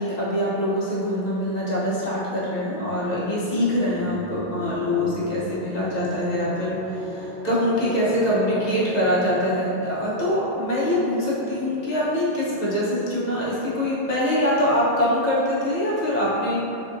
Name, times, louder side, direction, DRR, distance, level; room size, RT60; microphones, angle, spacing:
voice 1, 0.0-16.6, left 1 dB, 45° left, -8 dB, 0.8 m, -24 dB
sound 1, 3.4-13.3, right 1 dB, 60° right, 0.7 m, -38 dB
3.5 x 2.5 x 2.5 m, 2.8 s
omnidirectional pair, 1.0 m